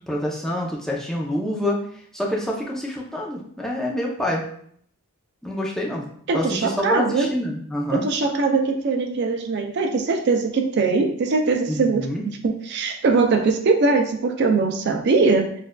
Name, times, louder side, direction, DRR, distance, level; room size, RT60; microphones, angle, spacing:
voice 1, 0.1-1.8 2.1-4.4 5.4-8.0 11.7-12.2, left 1 dB, ahead, -3 dB, 0.5 m, -27 dB
voice 2, 6.3-7.3 7.9-15.5, right 4 dB, 50° right, 5 dB, 0.4 m, -21 dB
6.4 x 2.4 x 2.2 m, 0.63 s
head